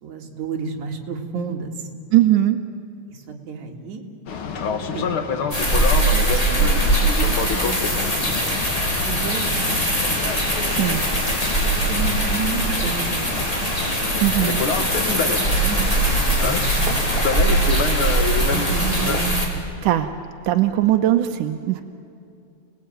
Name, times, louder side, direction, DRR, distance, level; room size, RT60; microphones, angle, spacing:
voice 1, 0.0-1.7 3.1-4.0 4.7-5.2 6.3-6.9 7.2-8.6 9.0-10.2 11.6-13.7 15.1-16.9 17.4-17.6 18.3-19.5 21.8-21.9, right 4 dB, 70° right, 1 dB, 3.5 m, -32 dB
voice 2, 2.1-2.6 10.6-11.0 14.2-14.6 19.8-20.1 20.4-21.8, right 14 dB, 90° right, 6 dB, 2.4 m, -19 dB
Boat Water vehicle, 4.3-19.2, left 5 dB, 50° left, 1.9 m, -28 dB
sound 1, 5.5-19.5, right 1 dB, 10° left, 3.3 m, -21 dB
28.5 x 19.5 x 9.2 m, 2.5 s
omnidirectional pair, 3.6 m